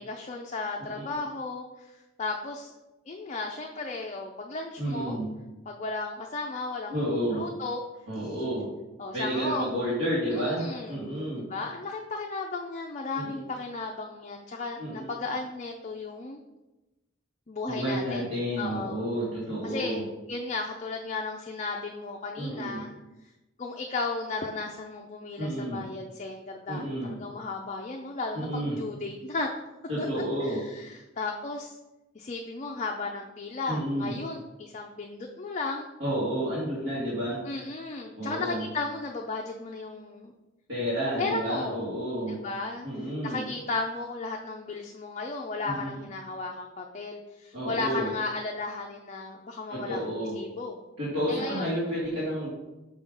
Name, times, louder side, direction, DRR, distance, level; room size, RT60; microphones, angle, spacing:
voice 1, 0.0-2.7 3.1-5.2 5.7-7.8 9.0-9.7 10.3-11.1 11.3-16.4 17.5-18.2 18.6-19.0 19.6-20.0 20.3-22.9 23.6-29.5 30.0-30.1 30.4-31.8 32.1-35.9 37.4-40.3 41.2-41.8 42.3-42.9 43.2-50.8 51.3-51.7, left 3 dB, 35° left, 2 dB, 0.4 m, -35 dB
voice 2, 0.8-1.2 4.8-5.3 6.9-7.4 8.1-8.7 9.1-11.5 13.1-13.4 14.8-15.1 17.7-20.0 22.4-22.8 25.4-25.8 26.7-27.2 28.3-28.8 29.9-30.6 33.7-34.1 36.0-37.4 38.2-38.6 40.7-42.4 42.8-43.4 45.6-45.9 47.5-48.1 49.7-50.4 51.0-52.5, equal, 75° right, -11 dB, 2.4 m, -30 dB
6.2 x 3.7 x 5.3 m, 1.0 s
head